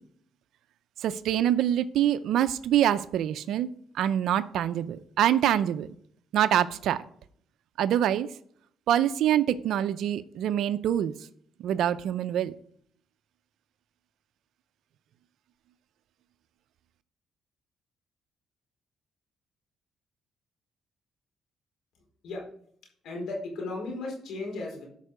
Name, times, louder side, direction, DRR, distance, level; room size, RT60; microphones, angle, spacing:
voice 1, 1.0-3.7 3.9-5.9 6.3-7.0 7.8-8.3 8.9-11.1 11.6-12.5, right 11 dB, 80° right, 13 dB, 0.5 m, -25 dB
voice 2, 23.0-24.9, left 2 dB, 75° left, 0 dB, 4.7 m, -35 dB
12.5 x 5.5 x 5.0 m, 0.63 s
cardioid pair, 90°, 0 cm